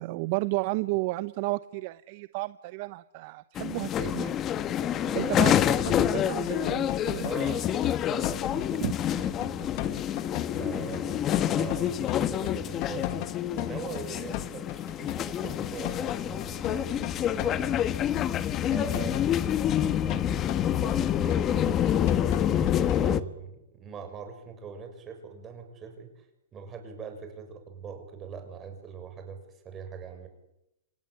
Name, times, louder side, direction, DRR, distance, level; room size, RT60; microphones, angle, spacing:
voice 1, 0.0-4.4 5.1-7.3 8.8-8.9, right 21 dB, 45° right, 14 dB, 0.9 m, -32 dB
sound 1, 3.6-23.2, left 10 dB, 25° left, 1.2 m, -27 dB
voice 2, 4.9-5.6 7.2-7.8 8.1-10.1 10.5-13.2 13.5-17.9 18.7-19.6 20.1-26.3 26.5-30.3, right 6 dB, 20° right, 5 dB, 6.8 m, -42 dB
sound 2, 5.9-6.1 6.5-23.1, left 16 dB, 45° left, 1.4 m, -37 dB
27.5 x 17.0 x 9.9 m, 0.86 s
hypercardioid pair, 140°, 0 cm